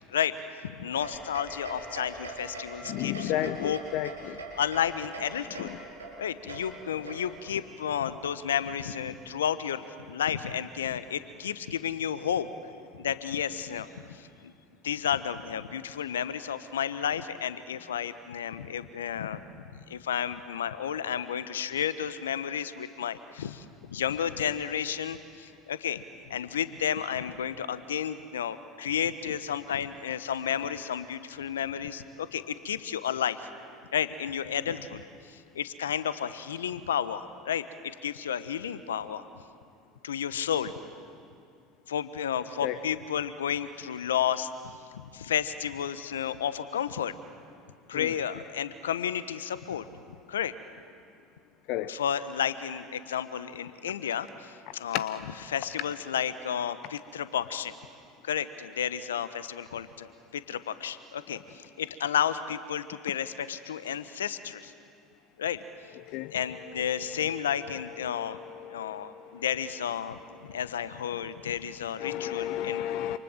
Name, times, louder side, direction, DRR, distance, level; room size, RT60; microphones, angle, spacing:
voice 1, 0.1-3.8 4.6-5.7 6.2-12.5 12.9-14.5 14.8-19.4 19.7-26.0 26.3-33.5 33.9-39.2 40.0-40.7 41.9-44.5 44.9-47.1 47.9-49.8 50.3-50.5 51.9-55.2 55.5-57.7 58.2-64.7 65.4-65.6 66.3-68.4 68.7-72.8, left 9 dB, 80° left, 13 dB, 1.1 m, -32 dB
sound 1, 1.0-7.6, right 2 dB, 90° right, 5.0 m, -42 dB
voice 2, 2.9-4.4 5.6-5.7 42.6-42.8 47.9-48.1 51.7-51.9 54.9-55.0 66.1-66.3 68.0-69.4 72.0-73.2, left 12 dB, 60° left, 14 dB, 0.8 m, -33 dB
28.0 x 28.0 x 7.4 m, 2.4 s
hypercardioid pair, 70°, 0 cm